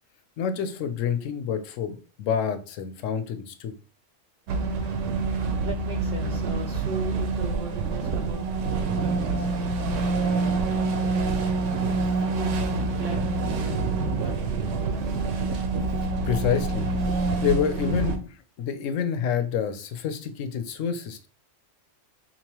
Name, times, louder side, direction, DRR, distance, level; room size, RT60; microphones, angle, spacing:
voice 1, 0.4-3.7 16.3-16.9 17.4-18.2 18.6-21.3, left 8 dB, 75° left, 9 dB, 0.9 m, -27 dB
sound 1, 4.5-18.2, right 3 dB, 75° right, 1.0 m, -26 dB
voice 2, 5.6-8.7 9.0-9.5 9.8-11.6 12.3-13.8 14.2-15.2, right 5 dB, 60° right, 3 dB, 0.6 m, -38 dB
4.0 x 2.9 x 2.9 m, 0.36 s
omnidirectional pair, 1.3 m